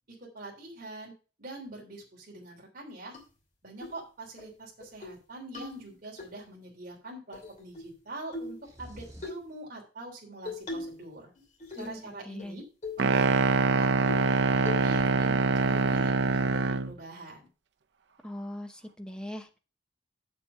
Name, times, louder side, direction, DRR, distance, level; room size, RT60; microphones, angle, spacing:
voice 1, 0.2-1.1 1.4-3.1 3.6-11.3 11.8-12.6 13.0-17.5, right 2 dB, 50° right, -3 dB, 3.3 m, -44 dB
sound 1, 3.1-3.2 3.8-4.0 4.4-4.5 4.8-5.2 5.5-6.3 7.3-8.0 8.3-8.6 9.2-9.4 10.5-11.0 11.4-12.0 12.4-12.5 12.8-13.1 13.5-13.6 14.1-14.4 14.7-15.1, left 3 dB, 45° left, 2.7 m, -39 dB
sound 2, 8.6-9.5, equal, 20° right, 2.7 m, -48 dB
voice 2, 11.7-12.6 18.2-19.6, left 1 dB, 5° left, 6 dB, 0.9 m, -41 dB
sound 3, 13.0-16.9, right 4 dB, 70° right, 0.6 m, -24 dB
7.4 x 7.2 x 5.7 m, 0.35 s
head